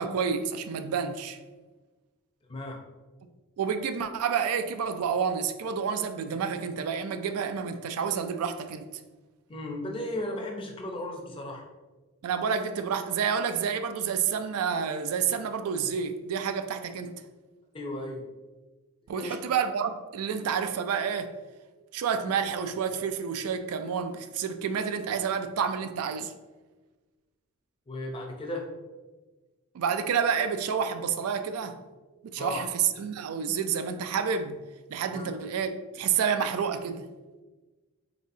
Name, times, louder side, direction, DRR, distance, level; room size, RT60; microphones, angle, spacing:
voice 1, 0.0-1.4 3.6-8.9 12.2-17.1 19.1-21.3 21.9-26.3 29.7-31.8 32.2-34.6 34.9-37.1, right 7 dB, 85° right, 0.3 m, -29 dB
voice 2, 9.5-11.6 17.7-18.2 19.1-19.3 27.9-28.7 32.4-32.7 35.1-35.3, left 1 dB, 25° left, 0.5 m, -35 dB
4.1 x 3.6 x 2.6 m
head